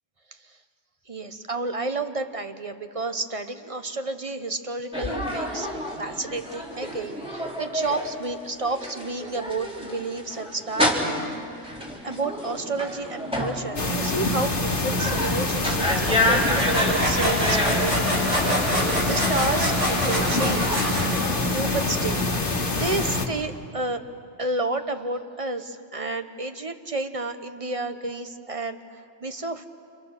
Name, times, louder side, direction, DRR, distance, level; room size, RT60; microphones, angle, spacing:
voice 1, 1.1-20.8 21.4-22.2 22.8-24.0 24.4-29.7, right 2 dB, 30° right, 8 dB, 1.1 m, -31 dB
sound 1, 4.9-22.0, equal, 5° right, 3.7 m, -30 dB
sound 2, 13.8-23.3, left 2 dB, 45° left, 1.8 m, -25 dB
sound 3, 16.1-21.7, right 1 dB, 75° right, 7.2 m, -27 dB
29.0 x 28.5 x 6.6 m, 2.4 s
omnidirectional pair, 1.2 m